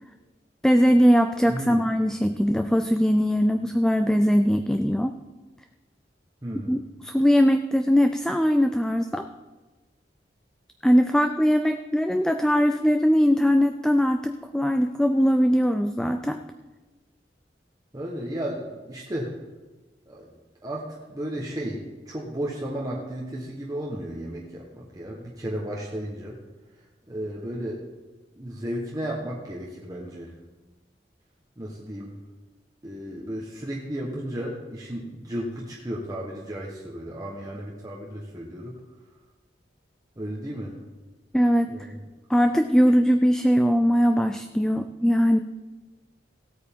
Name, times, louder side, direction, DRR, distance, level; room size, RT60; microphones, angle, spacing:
voice 1, 0.6-5.2 6.7-9.3 10.8-16.4 41.3-41.7 42.3-45.4, equal, 5° left, 7 dB, 0.3 m, -21 dB
voice 2, 1.5-1.9 6.4-6.8 17.9-19.3 20.1-20.3 20.6-26.4 27.1-27.8 28.3-30.3 31.6-32.1 32.8-38.8 40.2-40.8 41.6-42.0, right 1 dB, 20° right, -3 dB, 1.1 m, -34 dB
16.5 x 8.6 x 3.6 m, 1.2 s
head